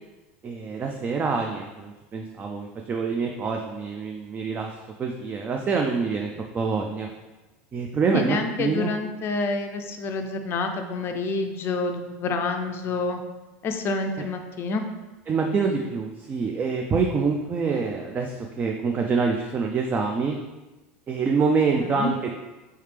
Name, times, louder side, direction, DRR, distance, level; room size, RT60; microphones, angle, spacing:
voice 1, 0.4-4.7 5.0-7.1 7.7-8.9 15.3-20.4 21.1-22.3, right 4 dB, 25° right, 2 dB, 0.3 m, -26 dB
voice 2, 8.1-13.2 13.6-14.8 21.7-22.1, left 3 dB, 40° left, 5 dB, 0.4 m, -28 dB
3.2 x 3.2 x 3.3 m, 1.1 s
supercardioid pair, 110°, 6 cm